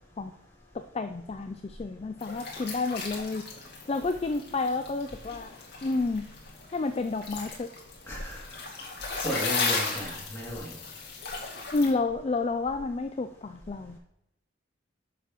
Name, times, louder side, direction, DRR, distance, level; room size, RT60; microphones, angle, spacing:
voice 1, 0.7-3.5 3.9-5.5 5.8-6.3 6.7-7.7 11.7-14.0, left 3 dB, 30° left, 8 dB, 0.3 m, -30 dB
sound 1, 2.2-11.9, left 4 dB, 55° left, 2.1 m, -36 dB
voice 2, 8.1-8.4 9.2-10.7, equal, 15° left, -5 dB, 2.6 m, -34 dB
10.0 x 6.6 x 3.0 m, 0.81 s
head